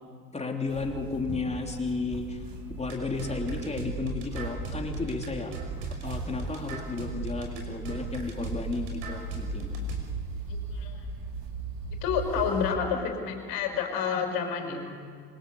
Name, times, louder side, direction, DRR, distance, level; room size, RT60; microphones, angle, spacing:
voice 1, 0.3-2.4 2.8-5.6 6.0-9.7 14.7-14.9, left 3 dB, 15° left, 2 dB, 3.4 m, -33 dB
sound 1, 0.7-12.7, right 2 dB, 45° right, 3.8 m, -38 dB
sound 2, 2.9-10.0, right 4 dB, 60° right, 5.9 m, -37 dB
voice 2, 12.0-14.8, left 6 dB, 45° left, 3 dB, 5.6 m, -29 dB
27.0 x 25.5 x 7.0 m, 2.1 s
figure-of-eight pair, 75°, 49 cm